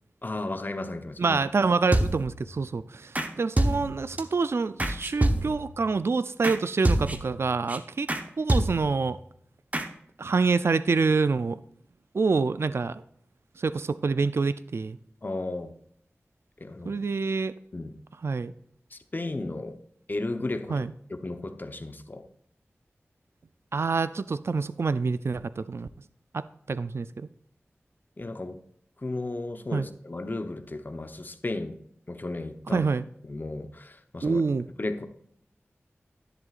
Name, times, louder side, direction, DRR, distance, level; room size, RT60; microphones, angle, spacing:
voice 1, 0.2-1.4 15.2-15.7 16.6-17.0 17.7-18.0 18.9-19.8 20.1-22.3 28.2-28.6 29.0-31.8 32.1-32.9 33.2-34.4 34.8-35.1, left 2 dB, 40° left, 8 dB, 0.9 m, -34 dB
voice 2, 1.2-8.1 8.4-9.2 10.2-11.6 12.1-13.0 13.6-15.0 16.8-17.5 18.2-18.5 20.7-20.9 23.7-25.9 26.3-27.3 29.7-29.9 32.7-33.0 34.2-34.7, right 4 dB, 65° right, 14 dB, 0.4 m, -26 dB
sound 1, 1.9-2.4 3.1-3.3 3.6-4.2 4.8-5.7 6.4-6.6 6.8-7.4 7.7-7.8 8.1-8.2 8.5-9.0 9.7-9.9, right 1 dB, 35° right, 1.0 m, -26 dB
11.0 x 11.0 x 2.5 m, 0.68 s
wide cardioid pair, 60°, 5 cm